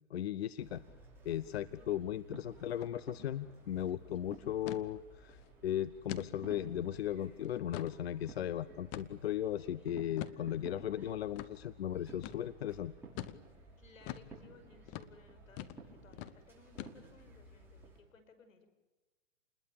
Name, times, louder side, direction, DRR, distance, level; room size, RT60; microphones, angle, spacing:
voice 1, 0.1-0.8 1.2-12.9, left 11 dB, 50° left, 16 dB, 0.8 m, -37 dB
sound 1, 0.6-18.0, right 2 dB, 5° right, 6.5 m, -55 dB
sound 2, 2.7-2.9 3.2-3.3 3.7-4.0 4.7-4.9 5.3-5.5 6.1-6.3 6.8-6.9 7.4-8.0 8.9-9.3 10.2-10.4 11.4-11.5 12.2-12.4 13.2-13.4 14.1-14.3 14.9-15.1 15.6-15.8 16.1-16.4 16.8-17.2, left 13 dB, 20° left, 0.8 m, -44 dB
voice 2, 4.0-4.6 13.8-18.7, left 4 dB, 75° left, 9 dB, 5.6 m, -61 dB
29.0 x 21.0 x 8.8 m, 1.2 s
hypercardioid pair, 145°, 39 cm